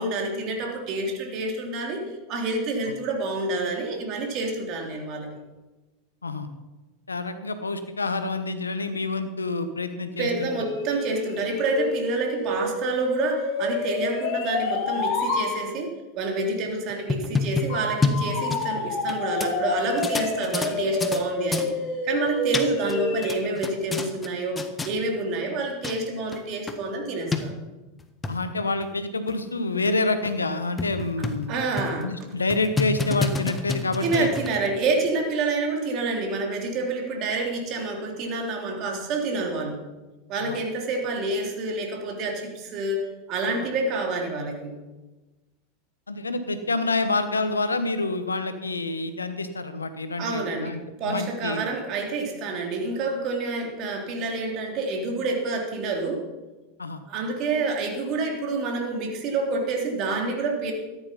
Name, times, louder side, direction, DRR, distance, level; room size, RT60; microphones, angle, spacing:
voice 1, 0.0-2.0 2.3-5.3 10.2-21.7 22.0-27.6 31.5-32.1 34.0-39.8 40.3-44.7 50.2-56.2 57.1-60.7, right 3 dB, 45° right, 1 dB, 3.3 m, -28 dB
voice 2, 7.1-10.5 28.3-31.6 32.0-34.3 40.4-40.6 46.1-51.6 56.8-57.0, left 3 dB, 90° left, 10 dB, 1.1 m, -27 dB
sound 1, 10.3-15.5 17.7-23.5, left 3 dB, 50° left, 3.8 m, -29 dB
sound 2, 16.9-19.1 19.4-19.5 20.0-21.2 21.5-21.7 22.3-23.0 23.2-24.3 24.6-24.9 25.6-25.7 25.8-26.0 26.3-26.4 26.7-26.8 27.3-27.4 28.0-28.3 28.8-28.9 29.3-29.4 29.9-30.0 30.3-30.4 30.8-31.5 31.8-32.0 32.5-34.7, left 3 dB, 15° left, 1.5 m, -28 dB
14.0 x 10.5 x 5.4 m, 1.2 s
hypercardioid pair, 90°, 0 cm